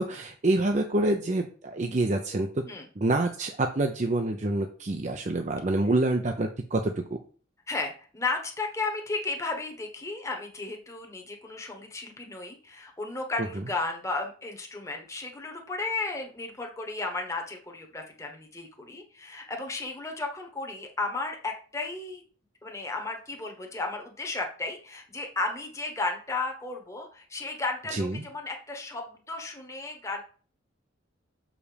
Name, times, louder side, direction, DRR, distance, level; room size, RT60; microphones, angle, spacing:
voice 1, 0.0-2.5 3.0-6.9 27.9-28.2, right 2 dB, 35° right, 4 dB, 0.6 m, -26 dB
voice 2, 7.7-22.2 22.6-30.2, left 3 dB, 15° left, 2 dB, 1.1 m, -34 dB
6.8 x 5.0 x 5.1 m, 0.41 s
head